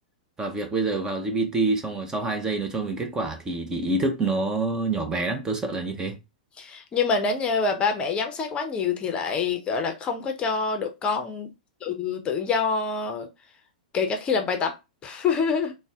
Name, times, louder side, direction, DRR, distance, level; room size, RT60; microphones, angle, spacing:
voice 1, 0.4-6.2, right 3 dB, 15° right, 0.7 m, -27 dB
voice 2, 6.6-11.5 11.8-13.3 13.9-14.7 15.0-15.7, left 5 dB, 25° left, 0.7 m, -26 dB
3.9 x 2.2 x 3.5 m
hypercardioid pair, 110°, 4 cm